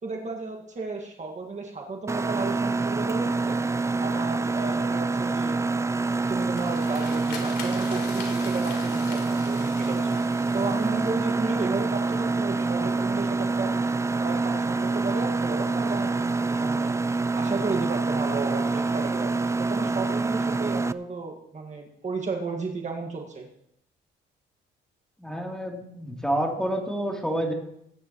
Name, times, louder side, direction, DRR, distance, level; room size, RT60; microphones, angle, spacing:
voice 1, 0.0-3.6 4.0-5.6 6.3-10.3 10.5-13.7 14.2-16.9 17.4-23.5, right 3 dB, 35° right, 1 dB, 1.9 m, -33 dB
Mechanisms, 2.1-20.9, right 3 dB, 15° right, 0.4 m, -26 dB
sound 1, 6.1-12.1, left 4 dB, 60° left, 3.6 m, -43 dB
voice 2, 25.2-27.5, right 1 dB, 5° left, -1 dB, 3.2 m, -28 dB
20.5 x 10.0 x 3.1 m, 0.75 s
cardioid pair, 90°, 20 cm